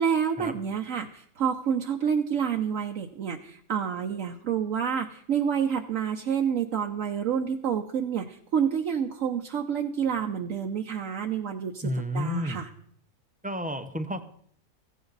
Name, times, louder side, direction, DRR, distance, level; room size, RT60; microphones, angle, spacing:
voice 1, 0.0-12.7, right 7 dB, 70° right, 2 dB, 1.2 m, -28 dB
voice 2, 11.8-12.6 13.4-14.2, equal, 10° right, 8 dB, 0.6 m, -31 dB
16.0 x 15.5 x 4.0 m, 0.63 s
omnidirectional pair, 1.4 m